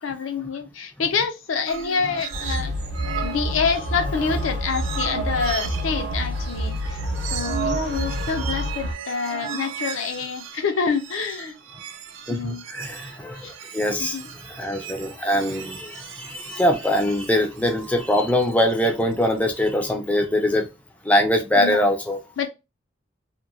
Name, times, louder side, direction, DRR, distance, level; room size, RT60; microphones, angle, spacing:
voice 1, 0.0-2.7 3.2-7.0 7.3-11.5 12.3-12.6 13.4-13.5 14.0-14.3 21.6-21.9 22.4-22.5, left 5 dB, 80° left, 0.5 m, -27 dB
sound 1, 1.7-2.7 2.9-19.7, right 7 dB, 80° right, 0.4 m, -36 dB
sound 2, 2.3-8.9, equal, 55° right, 0.8 m, -28 dB
voice 2, 12.3-20.7 21.0-22.2, left 1 dB, 5° left, 0.4 m, -23 dB
2.9 x 2.2 x 2.4 m
head